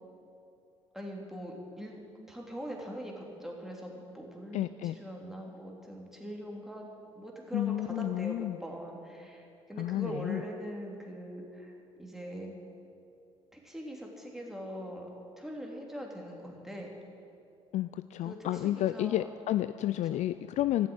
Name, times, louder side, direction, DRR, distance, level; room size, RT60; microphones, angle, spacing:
voice 1, 0.9-2.0 2.3-6.9 7.1-12.5 13.5-15.1 15.4-16.9 18.2-19.3 20.0-20.2, equal, ahead, -1 dB, 3.1 m, -42 dB
voice 2, 4.5-5.0 7.5-8.6 9.8-10.4 17.7-20.9, left 13 dB, 50° left, 12 dB, 0.4 m, -31 dB
14.0 x 7.6 x 9.0 m, 2.7 s
hypercardioid pair, 55°, 15 cm